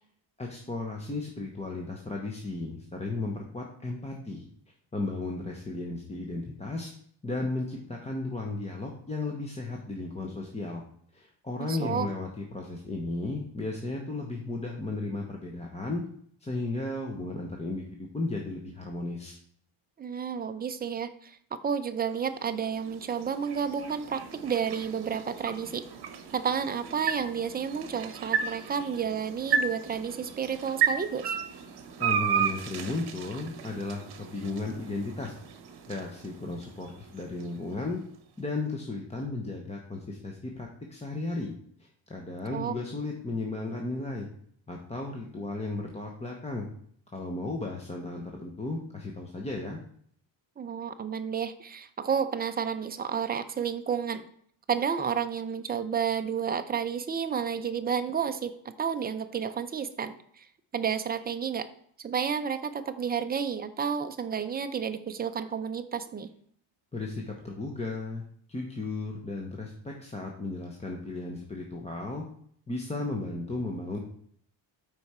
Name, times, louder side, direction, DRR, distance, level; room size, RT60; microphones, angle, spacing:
voice 1, 0.4-4.4 4.9-6.9 7.2-10.8 11.1-16.0 16.4-19.4 32.0-35.4 35.9-38.0 38.4-41.5 41.8-44.3 44.7-46.7 47.1-49.8 66.9-68.2 68.5-72.2 72.7-74.0, left 2 dB, 15° left, 1 dB, 0.7 m, -35 dB
voice 2, 11.6-12.1 20.0-21.4 21.6-25.8 26.3-31.3 42.5-42.7 50.6-54.3 54.7-60.5 60.7-61.7 62.0-66.3, right 7 dB, 20° right, 8 dB, 0.4 m, -31 dB
sound 1, 22.0-38.2, right 7 dB, 55° right, 1.1 m, -34 dB
8.0 x 4.9 x 4.2 m, 0.62 s
cardioid pair, 170°, 47 cm